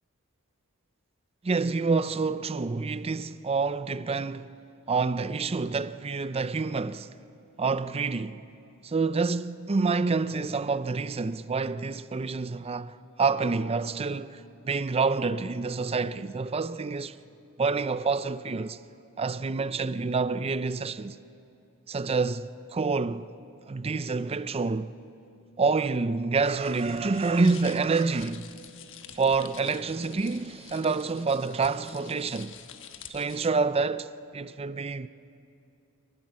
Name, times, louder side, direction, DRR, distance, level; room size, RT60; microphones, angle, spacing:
voice 1, 1.4-4.5 4.9-7.1 7.6-8.4 8.8-17.2 17.6-18.8 19.2-21.2 21.9-23.3 23.7-24.9 25.6-28.5 29.1-32.6 33.1-35.1, right 4 dB, 30° right, 0.5 m, -28 dB
sound 1, 26.4-33.5, left 8 dB, 65° left, 1.2 m, -48 dB
25.0 x 19.5 x 7.5 m
head